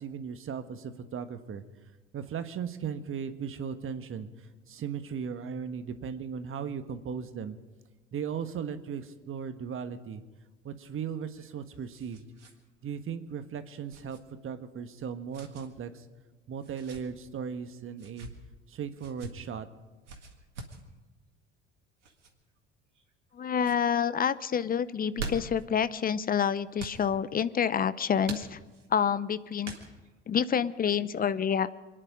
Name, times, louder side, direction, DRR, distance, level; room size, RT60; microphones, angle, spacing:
voice 1, 0.0-1.6 2.1-7.6 8.1-10.2 10.6-12.2 12.8-14.2 14.4-16.0 16.5-18.3 18.7-19.7, right 7 dB, 35° right, 9 dB, 1.5 m, -37 dB
sound 1, 11.2-12.6 12.8-13.0 13.9-14.2 15.3-15.7 16.6-17.0 17.9-18.3 19.0-19.3 20.1-20.8 22.0-22.3 22.9-23.3 23.6-23.8 24.9-25.6 26.8-27.0 28.2-28.9 29.6-30.2, right 3 dB, 85° right, 1.9 m, -42 dB
voice 2, 23.3-28.6 28.9-29.7 30.3-31.7, left 8 dB, 25° left, 16 dB, 0.7 m, -28 dB
28.0 x 10.0 x 5.1 m, 1.2 s
figure-of-eight pair, 65°, 35 cm